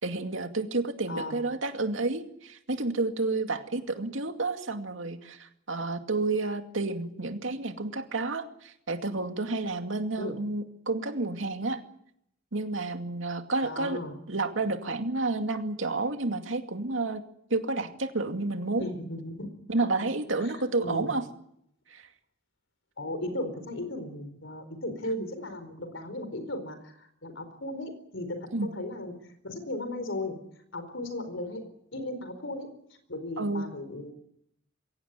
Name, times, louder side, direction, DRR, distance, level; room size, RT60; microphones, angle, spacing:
voice 1, 0.0-11.8 12.5-14.0 14.3-17.2 17.5-18.9 19.7-21.2 21.9-22.0 28.5-28.7 33.4-33.7, right 3 dB, 80° right, 6 dB, 2.4 m, -30 dB
voice 2, 13.6-14.1 18.8-19.5 19.8-20.1 20.4-20.5 20.8-21.1 23.0-29.1 29.4-30.4 30.7-32.7 33.1-34.1, left 1 dB, 70° left, 9 dB, 4.5 m, -36 dB
23.0 x 17.0 x 9.5 m, 0.75 s
head